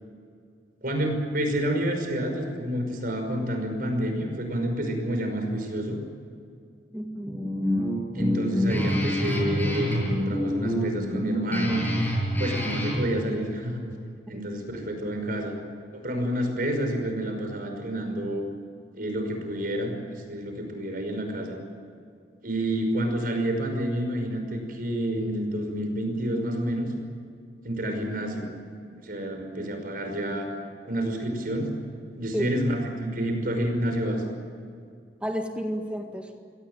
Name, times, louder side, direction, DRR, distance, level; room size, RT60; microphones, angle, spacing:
voice 1, 0.8-6.0 8.1-11.9 12.4-13.8 14.3-15.5 15.9-18.4 18.9-21.6 22.4-26.9 27.6-28.5 28.9-30.5 30.8-31.9 32.1-34.2, right 1 dB, 55° right, 4 dB, 5.6 m, -29 dB
voice 2, 6.9-7.5 14.3-14.4 32.3-32.6 35.2-36.3, equal, 5° right, 4 dB, 1.9 m, -31 dB
Guitar, 7.3-13.0, equal, 10° left, 7.2 m, -26 dB
24.0 x 18.0 x 9.1 m, 2.3 s
head